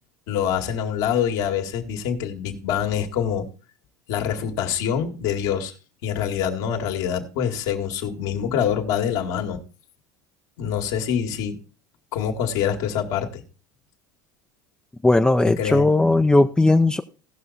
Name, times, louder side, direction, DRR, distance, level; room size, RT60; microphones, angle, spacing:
voice 1, 0.3-3.5 4.1-5.7 6.0-9.6 10.6-11.6 12.1-13.4 15.6-15.9, left 8 dB, 70° left, 3 dB, 2.0 m, -25 dB
voice 2, 15.0-17.0, left 2 dB, 10° left, 7 dB, 0.6 m, -17 dB
16.5 x 6.0 x 4.1 m, 0.34 s
hypercardioid pair, 85°, 10 cm